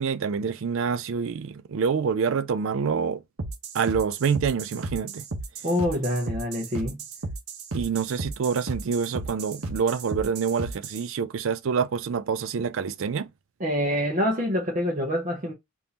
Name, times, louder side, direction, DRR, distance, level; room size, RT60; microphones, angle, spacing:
voice 1, 0.0-3.2 3.7-5.3 7.7-13.3, right 6 dB, 60° right, 0.4 m, -26 dB
sound 1, 3.4-11.1, right 3 dB, 80° right, 0.8 m, -34 dB
voice 2, 5.6-7.0 13.6-15.5, equal, 35° right, 0.8 m, -26 dB
3.5 x 2.6 x 2.8 m
head